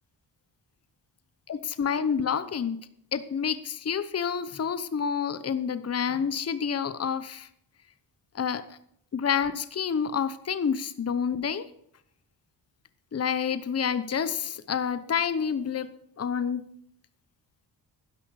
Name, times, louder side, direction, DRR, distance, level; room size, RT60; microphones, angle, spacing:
voice 1, 1.5-2.8 3.1-7.5 8.3-8.6 9.1-11.6 13.1-15.9 16.2-16.6, left 7 dB, 35° left, 14 dB, 0.9 m, -28 dB
12.0 x 10.5 x 4.8 m, 0.70 s
cardioid pair, 85°, 43 cm